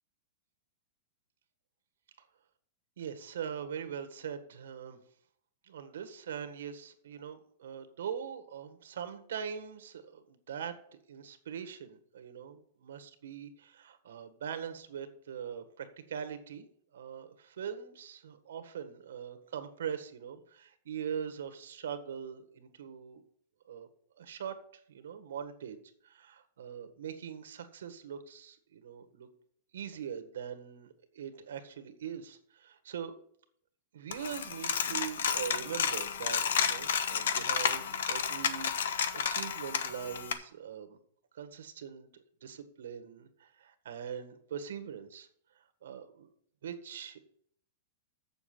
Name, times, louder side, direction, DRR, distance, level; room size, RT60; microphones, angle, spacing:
voice 1, 3.0-5.0 5.6-10.8 11.1-16.6 16.9-23.2 23.6-23.9 24.2-29.3 29.7-33.1 33.9-41.0 41.3-45.3 45.5-46.3 46.6-47.2, right 8 dB, 90° right, 9 dB, 1.6 m, -42 dB
Coin (dropping), 34.1-40.3, left 7 dB, 80° left, 1.1 m, -31 dB
7.7 x 7.2 x 7.7 m, 0.64 s
supercardioid pair, 175°, 0 cm